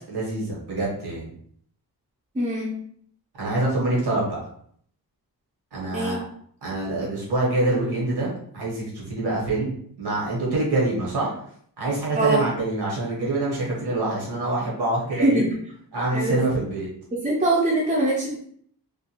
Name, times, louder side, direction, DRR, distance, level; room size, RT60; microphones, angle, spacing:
voice 1, 0.1-1.3 3.4-4.4 5.7-6.2 6.6-11.3 11.8-15.4 15.9-16.9, right 2 dB, 80° right, -4 dB, 1.2 m, -25 dB
voice 2, 2.3-2.7 5.9-6.2 12.1-12.5 15.1-15.5 16.1-16.4 17.2-18.4, right 1 dB, 20° right, -4 dB, 0.5 m, -22 dB
2.4 x 2.2 x 2.9 m, 0.63 s
wide cardioid pair, 135°, 39 cm